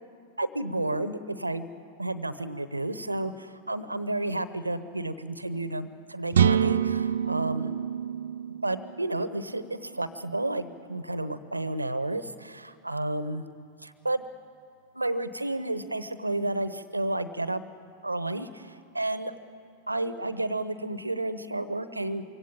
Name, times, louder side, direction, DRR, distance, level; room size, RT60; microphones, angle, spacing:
voice 1, 0.4-1.7 2.0-7.7 8.6-13.4 13.8-14.2 14.9-17.6 18.0-19.3 19.9-22.2, right 2 dB, 85° right, 14 dB, 0.9 m, -31 dB
sound 1, 6.3-10.1, right 8 dB, 65° right, 0.5 m, -26 dB
23.5 x 17.0 x 8.8 m, 2.6 s
figure-of-eight pair, 90°, 0 cm